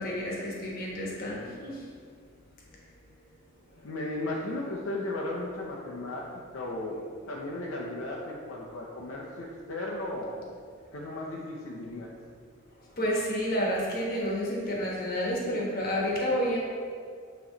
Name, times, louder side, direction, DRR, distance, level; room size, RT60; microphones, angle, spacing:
voice 1, 0.0-1.9 3.7-3.9 12.8-16.6, equal, 45° left, -3 dB, 1.2 m, -30 dB
voice 2, 3.8-10.6 10.9-12.1, left 1 dB, 65° left, -4 dB, 0.6 m, -35 dB
8.6 x 3.1 x 3.8 m, 2.1 s
head